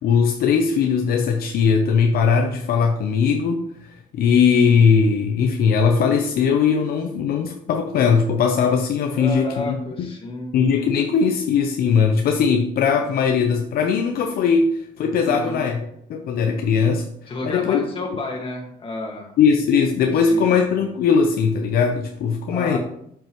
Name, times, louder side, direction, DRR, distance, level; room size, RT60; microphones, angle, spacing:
voice 1, 0.0-10.1 10.5-15.8 16.1-17.1 17.4-17.8 19.4-22.8, left 6 dB, 65° left, 4 dB, 0.7 m, -19 dB
voice 2, 9.1-10.5 15.2-15.7 17.3-19.4 20.3-20.6 22.5-22.8, left 2 dB, 30° left, 0 dB, 1.8 m, -31 dB
7.4 x 5.4 x 3.0 m, 0.72 s
cardioid pair, 110°, 17 cm